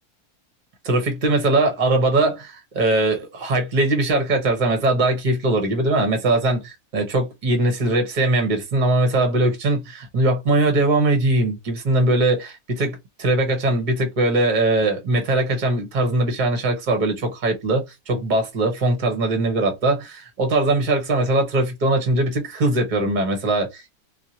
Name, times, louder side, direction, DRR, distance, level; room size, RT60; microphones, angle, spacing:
voice 1, 0.8-23.9, right 2 dB, 35° right, 1.0 m, -21 dB
2.9 x 2.5 x 2.7 m
omnidirectional pair, 1.7 m